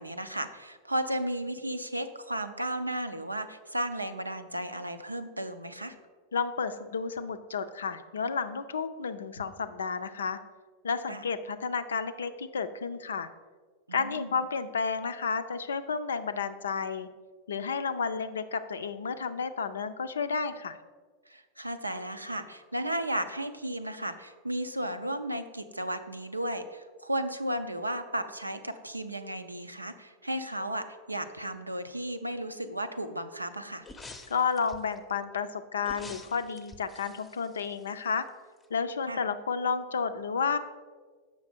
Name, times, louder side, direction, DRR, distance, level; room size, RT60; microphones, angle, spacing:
voice 1, 0.0-5.9 11.1-11.2 13.9-14.3 21.3-33.8 39.1-39.2, right 1 dB, 85° right, 9 dB, 0.5 m, -34 dB
voice 2, 6.3-10.4 10.8-13.3 13.9-17.1 17.5-20.8 34.3-38.2 38.7-40.6, left 5 dB, 70° left, 11 dB, 0.4 m, -31 dB
sound 1, 33.8-35.0 35.8-38.3 38.6-38.7, left 3 dB, 10° left, 0.6 m, -48 dB
7.5 x 5.8 x 4.3 m, 1.5 s
figure-of-eight pair, 90°, 0 cm